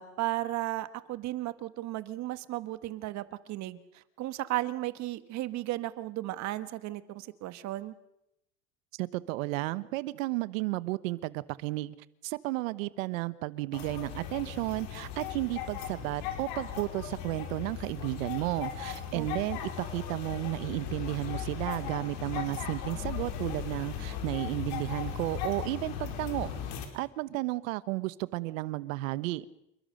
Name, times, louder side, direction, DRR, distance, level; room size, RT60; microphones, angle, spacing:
voice 1, 0.0-7.9 19.1-19.3, right 16 dB, 45° right, 13 dB, 1.4 m, -35 dB
voice 2, 9.0-11.9 12.2-26.5 26.9-29.5, right 19 dB, 85° right, 16 dB, 1.2 m, -33 dB
sound 1, 13.7-26.9, left 9 dB, 60° left, 4.9 m, -37 dB
28.0 x 22.0 x 6.6 m, 0.83 s
supercardioid pair, 145°, 39 cm